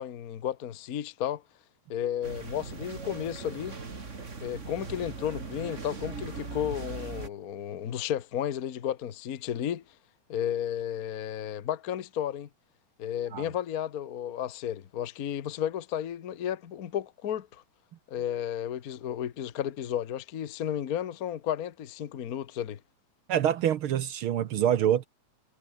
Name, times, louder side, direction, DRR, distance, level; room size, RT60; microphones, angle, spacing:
voice 1, 0.0-1.4 1.9-3.8 4.4-9.8 10.3-12.5 13.0-17.6 18.1-22.8, left 10 dB, 90° left, 0.7 m, -33 dB
sound 1, 2.2-7.3, right 4 dB, 25° right, 2.3 m, -39 dB
voice 2, 23.3-25.1, right 10 dB, 65° right, 1.3 m, -26 dB
omnidirectional pair, 3.4 m